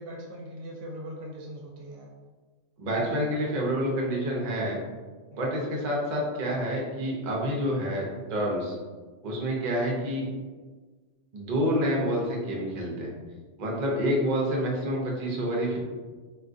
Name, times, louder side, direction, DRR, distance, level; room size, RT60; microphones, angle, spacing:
voice 1, 0.0-2.1 2.9-3.3 5.3-5.5, equal, 75° right, -1 dB, 0.9 m, -41 dB
voice 2, 2.8-4.8 5.4-8.8 9.2-10.3 11.3-13.1 13.6-15.8, equal, 45° right, -2 dB, 0.6 m, -28 dB
3.6 x 2.4 x 2.5 m, 1.4 s
omnidirectional pair, 1.3 m